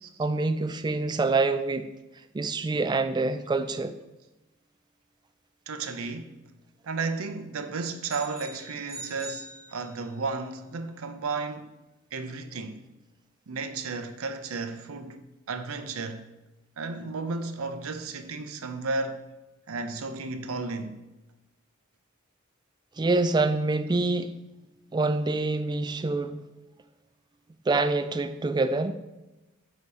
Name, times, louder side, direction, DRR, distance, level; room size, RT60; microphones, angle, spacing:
voice 1, 0.2-1.9 2.3-3.9 23.0-24.3 24.9-26.4 27.7-29.0, right 3 dB, 20° right, 0.3 m, -26 dB
voice 2, 5.7-6.3 6.8-11.7 12.1-12.8 13.5-15.2 15.5-16.3 16.8-19.2 19.7-21.0, right 3 dB, 80° right, 0.6 m, -33 dB
sound 1, 8.1-10.3, right 2 dB, ahead, 2.5 m, -43 dB
8.1 x 2.9 x 5.3 m
head